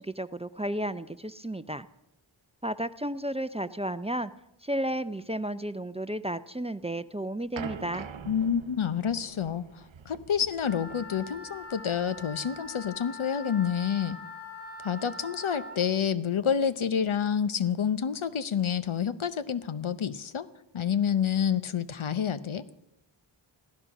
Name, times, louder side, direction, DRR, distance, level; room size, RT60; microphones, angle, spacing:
voice 1, 0.0-1.9 2.6-4.3 4.6-8.1, right 1 dB, 15° right, 13 dB, 0.5 m, -33 dB
sound 1, 7.6-13.0, right 6 dB, 70° right, 0.8 m, -44 dB
voice 2, 8.3-14.2 14.8-20.5 20.7-22.6, left 8 dB, 80° left, 13 dB, 0.9 m, -28 dB
Wind instrument woodwind instrument, 10.6-15.8, left 2 dB, 30° left, 6.1 m, -43 dB
15.5 x 13.5 x 6.0 m, 0.85 s
wide cardioid pair, 60°, 48 cm